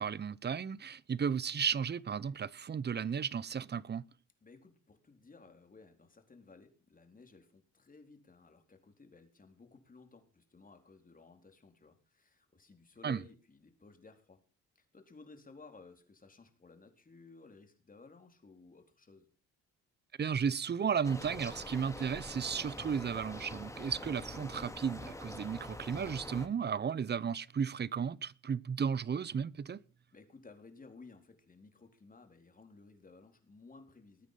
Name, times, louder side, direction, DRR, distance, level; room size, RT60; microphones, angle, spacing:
voice 1, 0.0-4.0 13.0-13.2 20.2-29.8, right 7 dB, 35° right, 0.9 m, -34 dB
voice 2, 4.4-14.4 14.7-19.3 30.1-34.3, left 3 dB, 30° left, 4.2 m, -57 dB
sound 1, 21.0-26.5, left 1 dB, 10° left, 3.0 m, -45 dB
20.0 x 9.1 x 5.9 m
cardioid pair, 90°, 30 cm